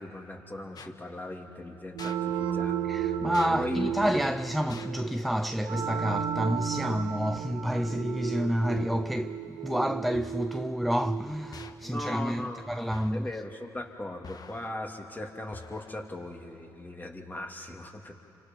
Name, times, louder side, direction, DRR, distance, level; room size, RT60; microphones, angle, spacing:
voice 1, 0.0-4.0 11.8-12.7 13.1-18.1, left 1 dB, 20° left, 3.0 m, -38 dB
sound 1, 0.8-0.9 2.0-2.2 3.3-3.5 4.7-5.0 6.1-6.5 7.4-7.8 8.8-9.2 10.2-10.6 11.5-11.9 12.9-13.3 14.2-14.8 15.5-16.1, left 5 dB, 45° left, 1.3 m, -46 dB
sound 2, 1.9-12.4, right 9 dB, 75° right, 1.2 m, -34 dB
voice 2, 2.9-13.3, equal, ahead, 0.5 m, -29 dB
29.5 x 25.5 x 5.6 m
hypercardioid pair, 55°, 9 cm